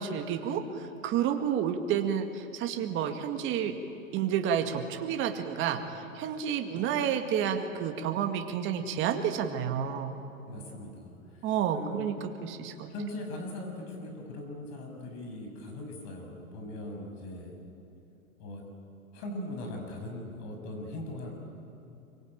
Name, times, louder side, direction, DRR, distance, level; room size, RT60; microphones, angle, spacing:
voice 1, 0.0-3.7 4.1-5.8 6.1-10.1 11.4-12.9, right 8 dB, 30° right, 5 dB, 2.1 m, -30 dB
voice 2, 10.4-11.2 11.7-12.0 12.9-17.5 18.4-18.6 19.1-21.3, left 1 dB, 40° left, 3 dB, 6.7 m, -40 dB
25.0 x 24.0 x 8.9 m, 2.8 s
hypercardioid pair, 140°, 41 cm